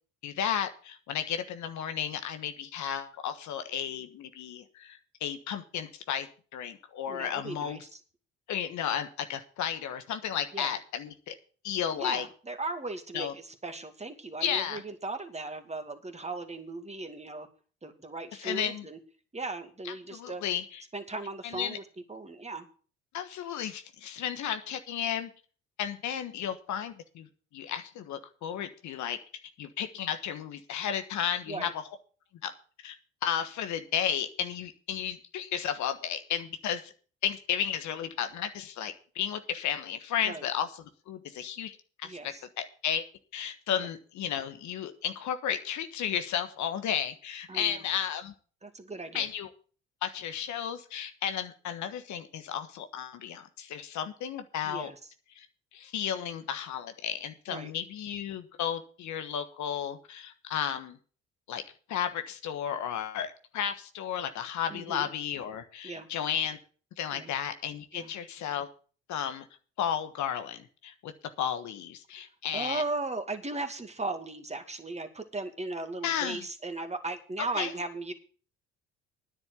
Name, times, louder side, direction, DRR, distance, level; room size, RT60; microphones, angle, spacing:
voice 1, 0.2-7.8 8.5-11.3 11.6-12.3 13.1-13.3 14.4-14.8 18.4-18.9 19.8-20.8 21.4-21.8 23.1-25.3 25.8-27.3 27.5-29.2 29.6-31.8 32.4-32.5 32.8-33.0 33.2-36.9 37.2-43.1 43.3-48.3 49.1-49.5 50.0-54.9 55.3-55.5 55.7-61.0 61.5-61.6 61.9-66.6 67.0-68.7 69.1-69.5 69.8-71.1 71.4-72.8 76.0-76.4 77.6-77.7, left 9 dB, 65° left, 8 dB, 1.4 m, -33 dB
voice 2, 7.1-8.0 10.5-10.7 12.0-17.5 17.8-19.0 19.3-20.4 20.9-21.8 22.1-22.7 31.5-31.7 40.2-40.5 42.0-42.4 43.8-43.9 47.5-47.9 48.6-49.3 54.6-55.0 57.5-57.7 64.7-65.1 65.8-66.1 67.1-67.3 67.9-68.1 72.5-78.1, right 2 dB, 20° right, 6 dB, 2.3 m, -37 dB
10.0 x 7.6 x 8.2 m, 0.41 s
hypercardioid pair, 60°, 32 cm